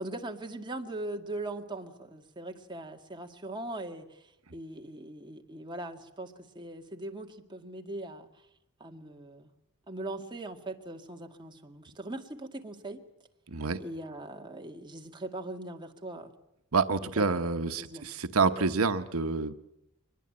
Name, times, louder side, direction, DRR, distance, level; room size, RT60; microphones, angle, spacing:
voice 1, 0.0-8.3 8.8-9.5 9.9-13.0 13.8-16.3 17.2-17.4 17.8-18.0, right 2 dB, 20° right, 3 dB, 2.0 m, -40 dB
voice 2, 13.5-13.8 16.7-19.5, right 4 dB, 80° right, 9 dB, 1.0 m, -28 dB
23.5 x 21.0 x 8.7 m, 0.83 s
head